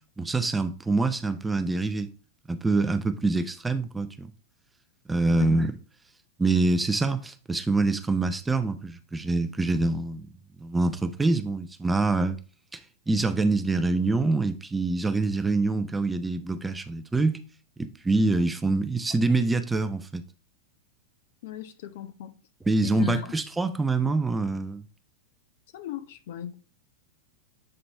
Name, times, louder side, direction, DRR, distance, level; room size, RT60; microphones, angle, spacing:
voice 1, 0.2-2.1 2.5-4.3 5.1-5.8 6.4-10.3 10.6-12.4 12.7-12.8 13.1-17.4 17.8-20.2 22.7-24.8, right 3 dB, 10° right, 0.6 m, -25 dB
voice 2, 21.4-22.4 22.8-23.3 25.7-26.6, left 9 dB, 60° left, 0.7 m, -37 dB
7.7 x 3.9 x 3.3 m
figure-of-eight pair, 95°, 0 cm